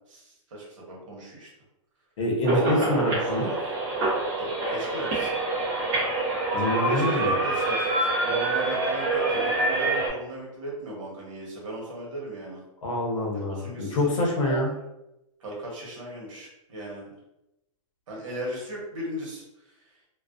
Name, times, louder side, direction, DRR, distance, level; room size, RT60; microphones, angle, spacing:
voice 1, 0.1-1.5 2.6-3.6 4.2-5.1 6.9-12.6 13.3-14.6 15.4-17.1 18.1-19.9, right 1 dB, 65° right, -3 dB, 1.0 m, -37 dB
voice 2, 2.2-3.5 6.5-7.4 12.8-14.7, left 1 dB, 65° left, -1 dB, 0.8 m, -26 dB
sound 1, 2.4-10.1, right 2 dB, 25° right, 0.6 m, -26 dB
2.3 x 2.2 x 2.4 m, 0.89 s
supercardioid pair, 175°, 18 cm